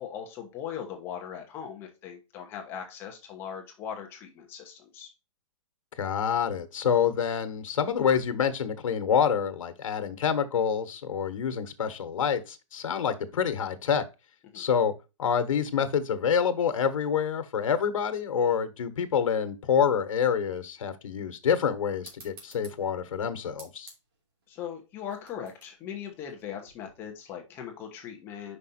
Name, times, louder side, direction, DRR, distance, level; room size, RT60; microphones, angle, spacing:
voice 1, 0.0-5.1 14.5-14.6 24.5-28.6, left 8 dB, 15° left, 0.9 m, -39 dB
voice 2, 6.0-14.0 14.5-14.9 15.2-23.9, left 7 dB, 85° left, 1.2 m, -27 dB
sound 1, 22.0-27.1, right 3 dB, 45° right, 2.9 m, -54 dB
5.4 x 5.0 x 4.1 m
hypercardioid pair, 175°, 17 cm